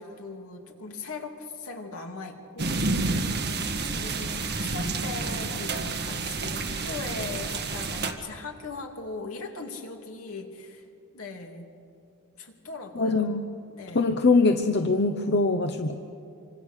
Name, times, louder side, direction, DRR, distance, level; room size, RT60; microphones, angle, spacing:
voice 1, 0.0-2.7 3.8-10.9 11.1-11.7 12.4-13.4 13.7-14.1, left 3 dB, 75° left, 2 dB, 3.0 m, -39 dB
sound 1, 2.6-8.1, right 3 dB, 50° right, 1.8 m, -29 dB
voice 2, 12.9-13.5 13.9-15.9, left 3 dB, 50° left, 6 dB, 0.9 m, -23 dB
27.0 x 25.5 x 6.6 m, 2.6 s
head